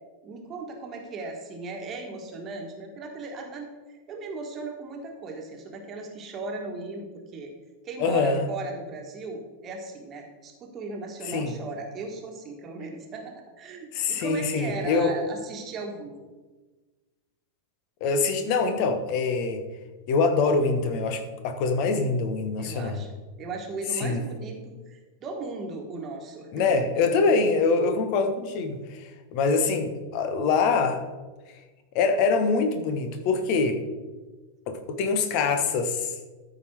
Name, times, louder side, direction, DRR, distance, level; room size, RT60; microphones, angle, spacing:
voice 1, 0.2-7.5 7.8-16.1 22.6-23.1 23.4-27.1, right 3 dB, 30° right, 2 dB, 1.6 m, -37 dB
voice 2, 8.0-8.5 11.3-11.5 13.9-15.1 18.0-19.6 20.1-23.0 24.0-24.2 26.5-31.1 31.9-33.8 34.7-36.1, left 4 dB, 45° left, 7 dB, 1.2 m, -24 dB
13.5 x 5.1 x 4.6 m, 1.3 s
figure-of-eight pair, 90°, 0 cm